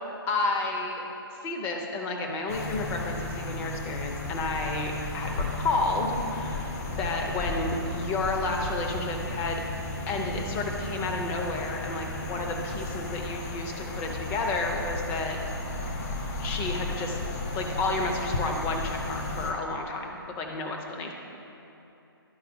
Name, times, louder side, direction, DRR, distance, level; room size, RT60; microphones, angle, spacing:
voice 1, 0.3-1.0 1.4-9.6 10.1-15.4 16.4-17.2 17.5-21.1, left 2 dB, 15° left, 1 dB, 0.6 m, -31 dB
sound 1, 2.5-19.5, left 2 dB, 40° left, 0.9 m, -34 dB
11.0 x 4.5 x 3.5 m, 2.9 s
figure-of-eight pair, 135°, 13 cm